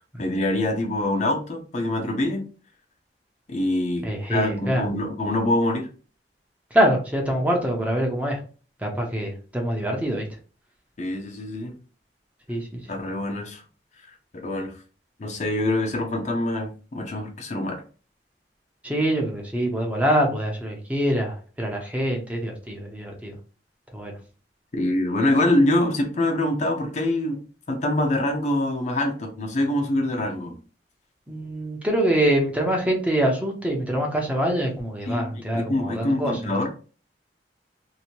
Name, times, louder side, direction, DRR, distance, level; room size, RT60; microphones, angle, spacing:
voice 1, 0.2-2.4 3.5-5.9 11.0-11.7 12.9-13.6 14.3-14.7 15.2-17.8 24.7-27.4 27.7-30.5 35.1-36.7, left 1 dB, 40° left, 2 dB, 0.6 m, -25 dB
voice 2, 4.0-4.8 6.7-8.4 8.8-10.3 12.5-12.8 18.8-23.3 23.9-24.1 31.3-36.5, right 1 dB, 10° right, 1 dB, 0.7 m, -24 dB
2.8 x 2.6 x 2.9 m, 0.38 s
head